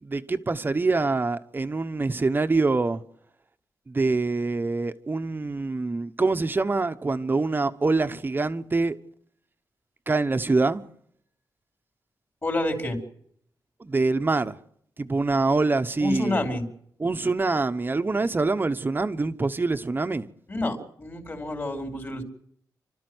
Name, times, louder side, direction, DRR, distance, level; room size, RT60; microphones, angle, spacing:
voice 1, 0.0-3.0 3.9-9.0 10.1-10.8 13.8-14.6 15.0-16.4 17.0-20.3, right 3 dB, 25° right, 1.1 m, -25 dB
voice 2, 12.4-13.0 16.0-16.6 20.5-22.2, left 2 dB, 30° left, 4.5 m, -28 dB
29.5 x 13.0 x 8.0 m
cardioid pair, 100°, 8 cm